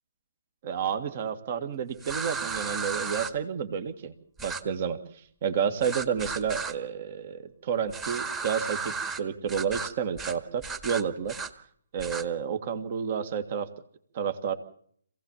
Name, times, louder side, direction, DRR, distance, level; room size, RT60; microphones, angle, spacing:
voice 1, 0.6-4.1 4.4-5.0 5.4-11.4 11.9-13.7 14.1-14.5, right 7 dB, 45° right, 10 dB, 1.9 m, -30 dB
sound 1, 2.0-3.3 4.4-4.6 5.8-6.7 7.9-9.2 9.5-9.9 10.2-10.4 10.6-11.5 12.0-12.2, right 5 dB, 15° right, 1.8 m, -34 dB
26.0 x 17.0 x 7.3 m, 0.63 s
figure-of-eight pair, 140°, 0 cm